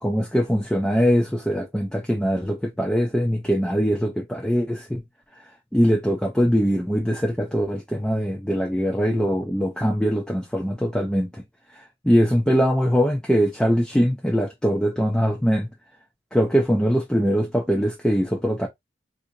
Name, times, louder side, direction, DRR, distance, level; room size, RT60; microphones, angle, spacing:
voice 1, 0.0-5.0 5.7-11.4 11.7-15.7 16.3-18.7, equal, 5° left, 0.4 m, -22 dB
4.0 x 2.6 x 2.5 m
head